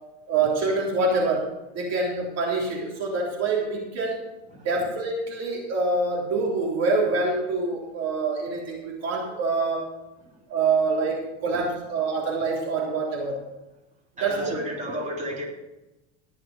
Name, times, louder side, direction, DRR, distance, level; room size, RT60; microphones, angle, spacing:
voice 1, 0.3-1.4 1.7-4.2 4.6-9.9 10.5-13.4 14.2-14.5, right 3 dB, 45° right, -2 dB, 3.5 m, -25 dB
voice 2, 14.2-15.5, equal, 20° right, -3 dB, 3.7 m, -32 dB
18.5 x 6.4 x 5.6 m, 0.99 s
supercardioid pair, 105°, 37 cm